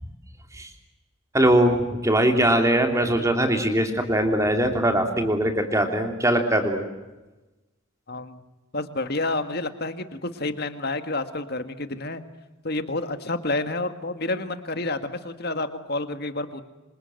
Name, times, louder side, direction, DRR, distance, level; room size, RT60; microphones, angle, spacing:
voice 1, 1.3-6.9, right 1 dB, 15° right, 5 dB, 3.2 m, -21 dB
voice 2, 8.1-8.4 8.7-12.2 12.6-16.6, left 2 dB, 45° left, 9 dB, 2.0 m, -29 dB
27.5 x 27.0 x 7.9 m, 1.1 s
head